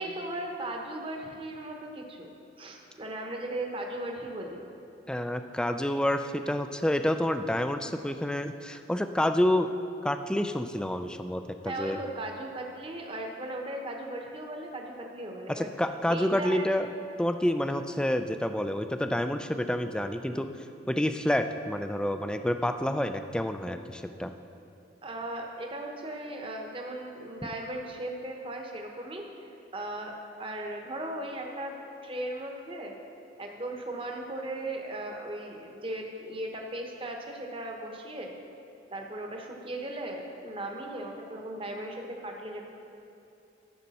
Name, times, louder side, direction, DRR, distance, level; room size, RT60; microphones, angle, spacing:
voice 1, 0.0-2.3 2.6-4.6 11.6-15.7 16.1-16.7 25.0-30.1 30.4-31.7 32.0-33.0 33.4-38.3 38.9-42.6, right 1 dB, 30° right, 2 dB, 0.9 m, -37 dB
voice 2, 5.1-9.7 10.0-12.0 15.6-16.9 17.2-20.5 20.9-24.3, left 1 dB, 5° left, 8 dB, 0.3 m, -28 dB
13.5 x 6.5 x 4.2 m, 2.6 s
head